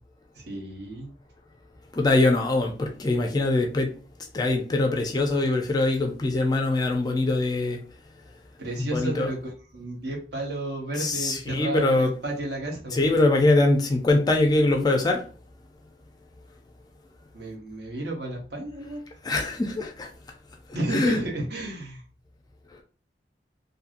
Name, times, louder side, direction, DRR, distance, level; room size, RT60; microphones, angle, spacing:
voice 1, 0.3-1.1 8.6-13.1 17.3-19.0 20.7-22.0, right 1 dB, 65° right, 0.9 m, -32 dB
voice 2, 1.9-3.9 4.3-7.8 8.8-9.3 11.0-12.1 12.9-15.2 19.2-20.1 20.9-21.2, left 2 dB, 20° left, 0.4 m, -23 dB
2.7 x 2.6 x 2.5 m
head